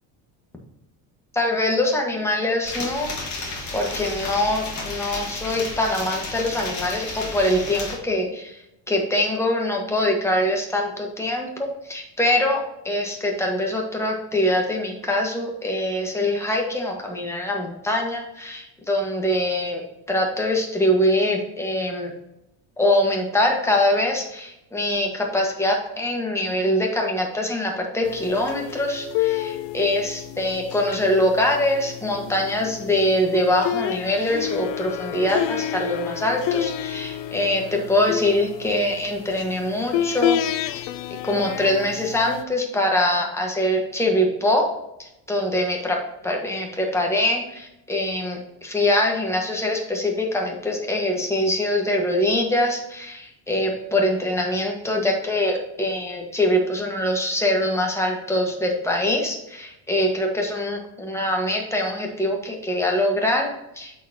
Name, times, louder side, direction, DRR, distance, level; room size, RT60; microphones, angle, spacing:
voice 1, 1.3-3.1 3.7-8.5 8.9-19.8 20.1-22.1 22.8-40.4 40.8-40.9 41.2-44.7 45.0-63.9, left 1 dB, 5° left, 1 dB, 1.4 m, -23 dB
sound 1, 2.6-8.0, left 3 dB, 40° left, 1.8 m, -32 dB
sound 2, 28.0-42.4, left 11 dB, 70° left, 0.6 m, -29 dB
8.1 x 4.5 x 2.9 m, 0.87 s
cardioid pair, 110°, 46 cm